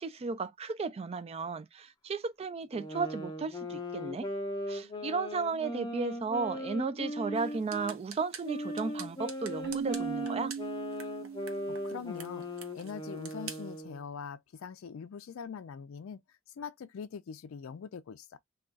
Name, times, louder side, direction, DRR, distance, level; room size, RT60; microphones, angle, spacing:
voice 1, 0.0-4.3 4.7-10.5, right 4 dB, 30° right, 0.3 m, -34 dB
sound 1, 2.7-8.0 8.4-14.1, left 1 dB, 20° left, 0.6 m, -39 dB
sound 2, 7.3-13.8, right 7 dB, 90° right, 0.6 m, -49 dB
Keyboard (musical), 9.6-12.3, right 6 dB, 50° right, 0.7 m, -38 dB
voice 2, 11.7-12.5 12.7-16.2 16.6-18.4, left 6 dB, 75° left, 0.4 m, -43 dB
2.3 x 2.3 x 3.8 m
head